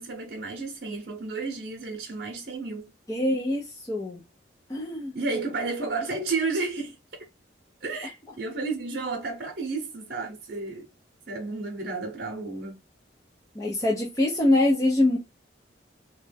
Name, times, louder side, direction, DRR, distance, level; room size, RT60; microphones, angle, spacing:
voice 1, 0.0-2.9 5.1-7.0 7.8-10.9 11.3-12.8, right 3 dB, 55° right, 0.8 m, -32 dB
voice 2, 3.1-4.2 4.7-5.1 13.5-15.2, left 1 dB, 15° left, 0.5 m, -24 dB
3.1 x 2.2 x 3.4 m
head